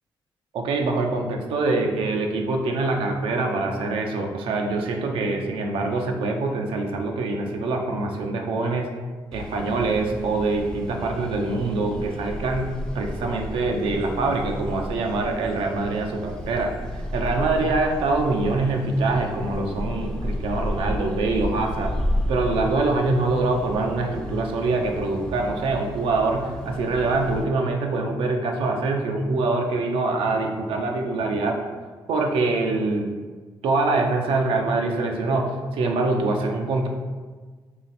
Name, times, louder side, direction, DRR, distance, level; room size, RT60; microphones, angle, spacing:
voice 1, 0.5-8.9 9.3-12.7 12.9-16.7 17.1-21.9 22.3-31.6 32.1-33.1 33.6-36.9, right 3 dB, 80° right, 2 dB, 0.5 m, -24 dB
sound 1, 9.3-27.4, left 1 dB, 10° left, 0.5 m, -32 dB
3.1 x 2.8 x 4.0 m, 1.4 s
cardioid pair, 75°, 9 cm